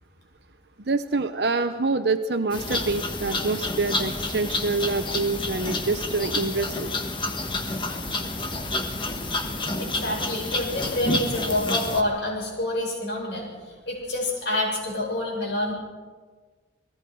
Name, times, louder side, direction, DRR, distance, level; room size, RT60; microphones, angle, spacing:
voice 1, 0.8-6.9, right 3 dB, 60° right, 8 dB, 0.8 m, -26 dB
sound 1, 2.5-12.0, left 2 dB, 25° left, 1.6 m, -29 dB
voice 2, 9.8-15.7, left 1 dB, 70° left, -1 dB, 7.2 m, -28 dB
29.5 x 19.5 x 4.7 m, 1.5 s
head